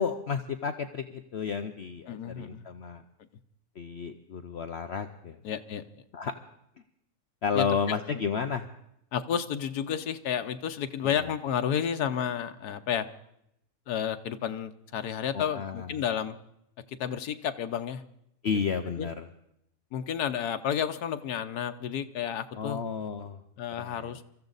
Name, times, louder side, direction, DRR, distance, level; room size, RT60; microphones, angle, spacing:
voice 1, 0.0-3.0 3.8-5.4 6.1-6.3 7.4-8.7 11.0-11.1 15.3-15.9 18.4-19.2 22.6-23.4 23.8-24.1, left 6 dB, 55° left, 7 dB, 0.9 m, -32 dB
voice 2, 2.1-2.7 5.4-5.8 7.5-7.7 9.1-13.1 13.9-16.4 16.9-18.0 19.0-19.1 19.9-22.8 23.6-24.2, left 8 dB, 90° left, 9 dB, 1.4 m, -31 dB
24.0 x 14.5 x 4.0 m, 0.76 s
omnidirectional pair, 1.6 m